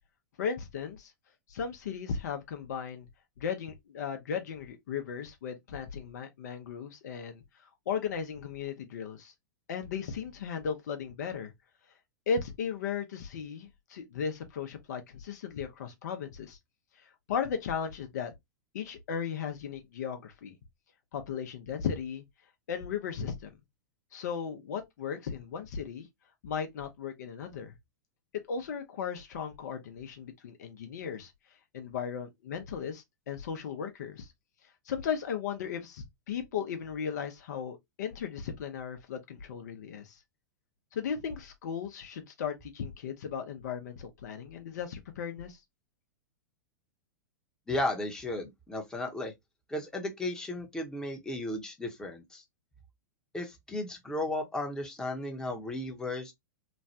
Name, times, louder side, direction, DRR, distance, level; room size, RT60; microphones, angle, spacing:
voice 1, 0.4-1.1 1.5-3.1 3.4-7.4 7.9-9.3 9.7-11.5 12.3-16.6 17.3-18.3 18.7-20.6 21.1-22.2 22.7-23.5 24.1-26.1 26.4-27.7 28.5-31.3 31.7-34.3 34.9-40.2 40.9-45.6, left 7 dB, 65° left, 0.7 m, -36 dB
voice 2, 47.7-49.3 49.7-52.4 53.3-56.3, left 1 dB, 5° left, 0.8 m, -34 dB
3.1 x 2.2 x 2.6 m
hypercardioid pair, 105°, 10 cm